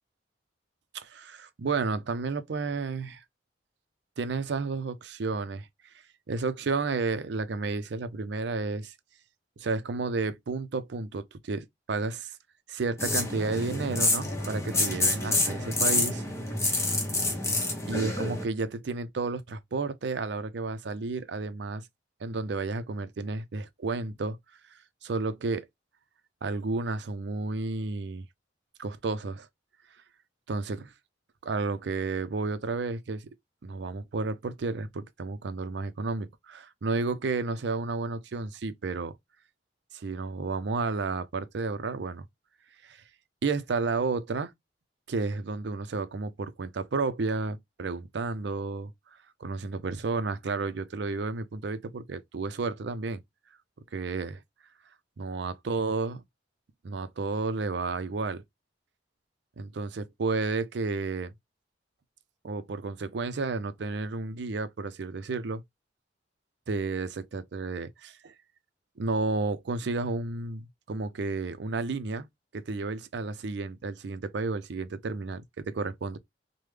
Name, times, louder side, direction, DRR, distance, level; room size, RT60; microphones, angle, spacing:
voice 1, 0.9-3.2 4.2-5.7 6.3-8.9 9.6-12.4 12.7-16.2 17.9-21.9 22.2-24.4 25.0-25.7 26.4-28.2 28.8-29.5 30.5-30.9 31.4-33.3 33.6-39.1 39.9-42.2 42.8-43.0 43.4-44.5 45.1-48.9 49.4-53.2 53.9-54.4 55.2-56.2 56.8-58.4 59.6-61.3 62.4-65.6 66.7-68.3 69.0-72.3 72.5-76.2, right 3 dB, 65° right, 0.5 m, -32 dB
sound 1, 13.0-18.4, left 2 dB, 15° left, 0.8 m, -28 dB
3.4 x 2.1 x 3.2 m
head